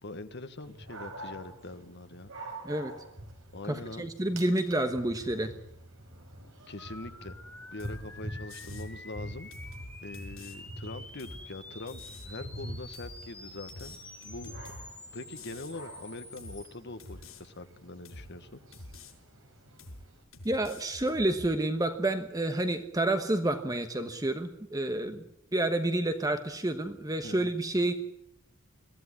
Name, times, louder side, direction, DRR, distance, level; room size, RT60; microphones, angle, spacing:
voice 1, 0.0-2.3 3.5-4.1 6.7-7.3 7.7-9.5 10.0-14.5 15.1-18.6 27.2-27.5, left 2 dB, 55° left, 10 dB, 1.4 m, -43 dB
Dog, 0.6-20.2, right 1 dB, 65° right, 5.2 m, -46 dB
voice 2, 3.7-5.5 20.4-25.2 25.5-27.9, right 1 dB, 15° right, 8 dB, 1.2 m, -29 dB
sound 1, 6.8-16.7, left 2 dB, 5° left, 2.1 m, -49 dB
sound 2, 7.8-8.1 8.5-8.9 9.5-10.6 11.2-11.5 11.9-12.3 12.9-13.2 13.7-14.9 15.3-15.7 16.4-16.6 17.0-17.4 18.0-18.3 18.7-19.1 19.8-20.1 20.3-21.5, left 2 dB, 85° left, 6.1 m, -47 dB
22.0 x 15.5 x 9.8 m, 0.77 s
head